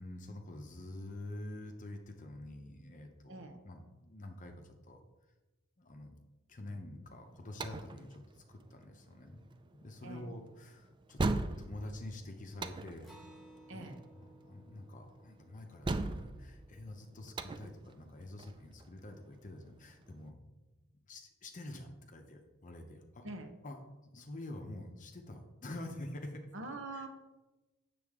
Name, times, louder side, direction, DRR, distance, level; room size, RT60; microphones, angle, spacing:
voice 1, 0.0-5.0 5.8-6.2 6.5-9.5 9.8-13.1 13.7-13.9 14.2-20.5 21.1-23.3 23.6-23.8 24.1-26.5 26.9-27.1, left 1 dB, 35° left, 4 dB, 0.7 m, -47 dB
voice 2, 3.3-3.6 10.0-10.3 13.7-14.0 23.2-23.5 26.5-27.1, right 2 dB, 60° right, 5 dB, 1.0 m, -44 dB
sound 1, 7.1-20.3, right 2 dB, 20° right, 0.3 m, -40 dB
Acoustic guitar, 13.0-17.9, right 1 dB, ahead, 1.3 m, -60 dB
8.2 x 6.8 x 3.6 m, 1.1 s
head